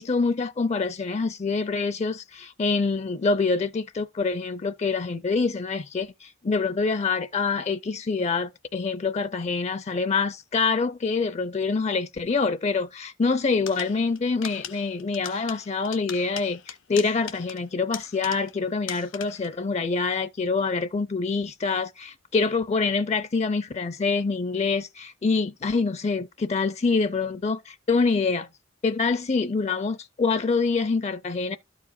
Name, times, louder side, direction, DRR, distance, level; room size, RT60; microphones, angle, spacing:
voice 1, 0.0-28.5 28.8-31.6, left 4 dB, 35° left, 0.4 m, -26 dB
sound 1, 13.7-18.6 18.9-19.6, left 9 dB, 70° left, 1.0 m, -40 dB
13.0 x 4.8 x 2.5 m
head